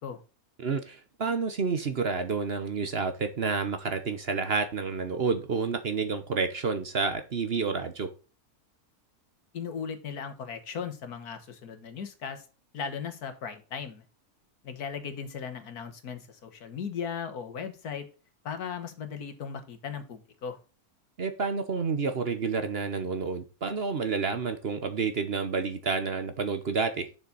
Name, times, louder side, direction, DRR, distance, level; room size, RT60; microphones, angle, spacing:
voice 1, 0.6-8.1 21.2-27.1, right 4 dB, 45° right, 1.0 m, -29 dB
voice 2, 9.5-12.4 12.7-14.0 14.6-18.1 18.4-20.6, left 6 dB, 80° left, 1.8 m, -37 dB
7.2 x 6.1 x 4.0 m
omnidirectional pair, 1.6 m